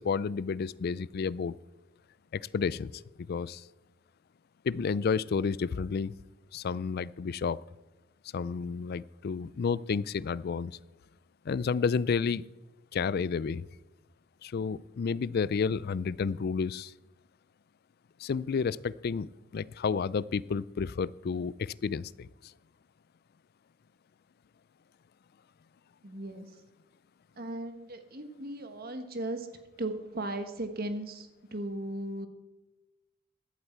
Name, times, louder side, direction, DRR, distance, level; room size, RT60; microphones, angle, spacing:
voice 1, 0.0-1.6 2.3-2.9 3.3-3.6 4.6-6.1 6.5-7.6 8.3-10.8 11.5-12.4 12.9-13.7 14.4-16.9 18.2-22.3, left 5 dB, 45° left, 20 dB, 0.3 m, -31 dB
voice 2, 26.0-26.5 27.4-29.5 29.8-32.3, right 1 dB, 45° right, 8 dB, 1.4 m, -37 dB
16.0 x 11.5 x 4.5 m, 1.0 s
head